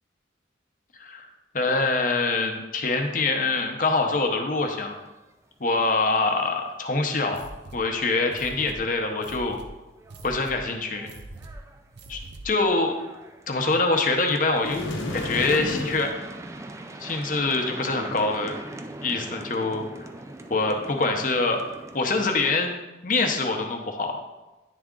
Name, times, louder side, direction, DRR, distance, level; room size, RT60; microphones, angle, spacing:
voice 1, 1.5-4.9 5.6-7.4 7.7-9.6 10.2-11.1 12.1-12.2 12.4-12.9 13.5-14.8 15.1-16.1 17.0-18.5 19.0-19.8 20.5-21.6 21.9-22.7 23.0-24.2, left 3 dB, 45° left, 3 dB, 0.7 m, -24 dB
sound 1, 4.8-5.5 5.8-5.9 6.2-6.3 6.7-6.8 8.6-8.7 9.3-9.4 9.7-22.0, right 2 dB, 15° right, 0.3 m, -42 dB
sound 2, 7.3-12.7, right 2 dB, 65° right, 0.6 m, -44 dB
sound 3, 14.6-16.1, left 2 dB, 90° left, 0.9 m, -31 dB
9.8 x 3.6 x 3.7 m, 1.1 s
head